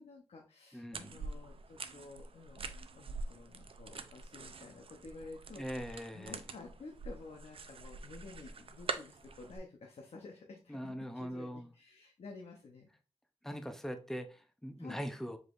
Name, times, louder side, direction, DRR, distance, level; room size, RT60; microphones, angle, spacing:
voice 1, 0.0-12.9 14.8-15.0, left 3 dB, 80° left, 0.8 m, -52 dB
voice 2, 0.7-1.1 5.6-6.4 10.7-11.7 13.4-15.4, equal, 5° left, 0.6 m, -41 dB
sound 1, 0.9-9.6, right 4 dB, 60° right, 0.4 m, -45 dB
5.0 x 3.9 x 2.5 m
wide cardioid pair, 105°, 11 cm